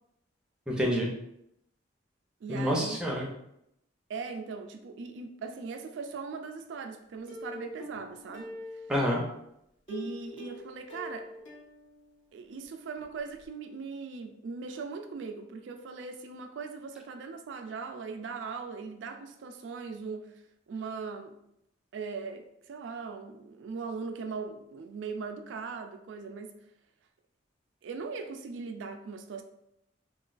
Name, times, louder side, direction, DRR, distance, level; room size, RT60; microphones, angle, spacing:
voice 1, 0.7-1.1 2.5-3.3 8.9-9.2, equal, 5° right, -3 dB, 0.4 m, -27 dB
voice 2, 2.4-3.0 4.1-8.5 9.9-11.3 12.3-21.3 21.9-26.6 27.8-29.4, right 5 dB, 75° right, 7 dB, 0.3 m, -39 dB
Plucked string instrument, 7.3-9.3 9.9-12.7 13.0-13.1 13.4-13.5, left 2 dB, 75° left, 0.8 m, -44 dB
3.0 x 2.2 x 2.4 m, 0.79 s
head